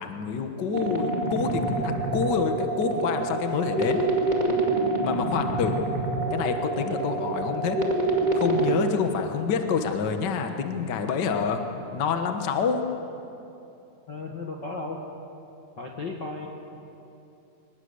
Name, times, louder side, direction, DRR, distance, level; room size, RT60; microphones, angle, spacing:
voice 1, 0.0-4.0 5.0-5.7 6.3-7.8 8.3-11.6 11.9-12.8, left 6 dB, 60° left, 6 dB, 1.1 m, -27 dB
sound 1, 0.7-8.7, right 2 dB, 15° right, 1.9 m, -27 dB
voice 2, 14.1-15.0 15.8-16.5, left 3 dB, 45° left, 0 dB, 1.7 m, -34 dB
24.5 x 20.0 x 8.1 m, 2.8 s
omnidirectional pair, 3.8 m